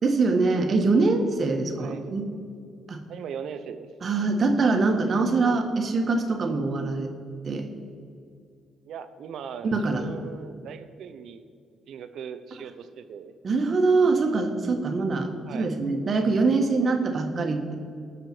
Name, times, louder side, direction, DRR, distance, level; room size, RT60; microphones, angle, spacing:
voice 1, 0.0-2.3 2.9-3.0 4.0-7.1 7.4-7.7 9.6-10.0 13.4-17.7, right 3 dB, 45° right, 5 dB, 1.5 m, -23 dB
voice 2, 3.1-3.9 8.8-11.5 11.9-13.3 15.5-15.7, right 7 dB, 75° right, 10 dB, 0.8 m, -39 dB
19.0 x 6.7 x 4.6 m, 2.3 s
cardioid pair, 90°, 0 cm